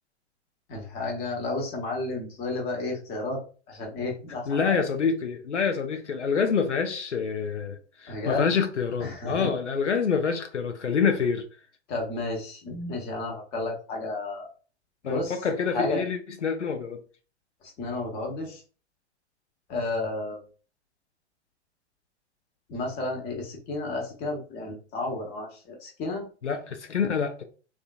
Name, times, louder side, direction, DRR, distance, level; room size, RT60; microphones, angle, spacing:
voice 1, 0.7-3.4 3.7-4.8 8.1-8.6 9.0-9.5 11.9-14.5 15.0-15.3 15.7-16.0 17.8-18.6 19.7-20.4 22.7-26.3, left 2 dB, 30° left, 1.0 m, -32 dB
voice 2, 4.5-11.5 15.0-17.0 26.4-27.4, left 6 dB, 90° left, 0.5 m, -27 dB
3.6 x 2.4 x 2.3 m
figure-of-eight pair, 105°, 34 cm